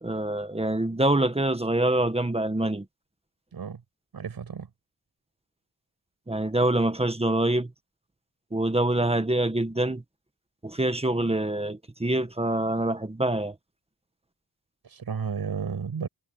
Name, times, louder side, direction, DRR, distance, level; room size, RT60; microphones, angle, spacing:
voice 1, 0.0-2.8 6.3-7.7 8.5-10.0 10.6-13.5, right 1 dB, 15° right, 1.5 m, -25 dB
voice 2, 4.1-4.7 14.8-16.1, right 6 dB, 75° right, 6.5 m, -32 dB
wide cardioid pair, 80°, 37 cm